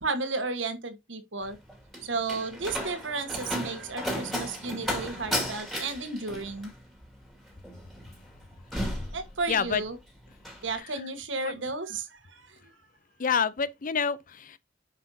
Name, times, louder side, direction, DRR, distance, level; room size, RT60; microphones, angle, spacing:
voice 1, 0.0-1.6 2.0-6.7 9.1-9.9 10.6-12.6, right 3 dB, 85° right, 1.5 m, -33 dB
Slam, 1.4-9.9 10.2-10.7, equal, ahead, 2.3 m, -35 dB
voice 2, 9.5-9.8 10.7-11.1 11.4-11.6 13.2-14.6, left 6 dB, 45° left, 0.6 m, -29 dB
9.4 x 5.7 x 2.8 m
head